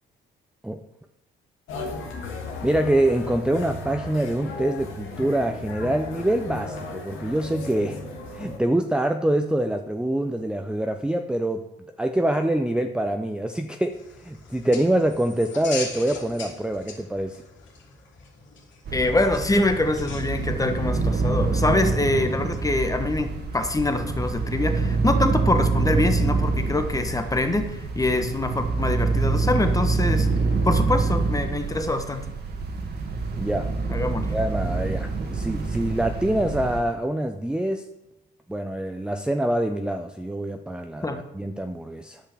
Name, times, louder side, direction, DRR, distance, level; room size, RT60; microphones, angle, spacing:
sound 1, 1.7-8.6, left 3 dB, 85° left, 1.9 m, -35 dB
voice 1, 2.6-8.0 8.3-11.7 12.0-17.4 33.4-33.7 34.3-37.9 38.5-42.2, right 1 dB, 5° right, 6 dB, 0.6 m, -25 dB
sound 2, 13.9-21.3, left 4 dB, 70° left, 2.8 m, -41 dB
voice 2, 18.9-30.3 30.6-32.2 33.9-34.3 41.0-41.2, left 2 dB, 15° left, 7 dB, 1.1 m, -24 dB
sound 3, 18.9-36.8, right 3 dB, 55° right, 1.8 m, -26 dB
10.5 x 5.6 x 6.7 m, 0.93 s
cardioid pair, 90°, 20 cm